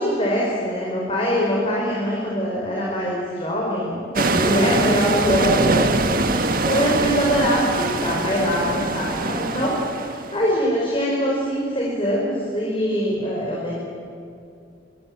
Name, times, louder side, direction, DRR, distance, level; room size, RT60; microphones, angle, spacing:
voice 1, 0.0-9.9 10.3-13.7, equal, 30° left, -3 dB, 5.2 m, -23 dB
sound 1, 4.2-10.5, right 2 dB, 50° right, 1.7 m, -23 dB
25.5 x 25.0 x 8.0 m, 2.6 s
head